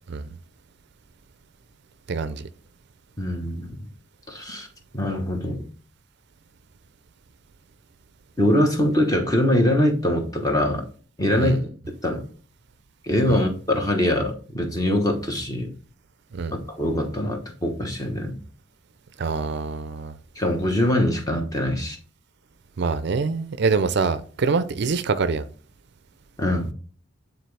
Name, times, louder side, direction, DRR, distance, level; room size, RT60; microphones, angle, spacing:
voice 1, 2.1-2.5 11.3-11.6 13.3-13.4 16.3-16.6 19.2-20.1 22.8-25.5, right 4 dB, 55° right, 0.4 m, -25 dB
voice 2, 3.2-3.7 4.3-4.7 4.9-5.6 8.4-10.8 11.2-11.7 12.0-12.2 13.1-15.7 16.7-18.4 20.4-22.0 26.4-26.7, left 1 dB, 15° left, 1.1 m, -23 dB
9.3 x 3.9 x 3.3 m
head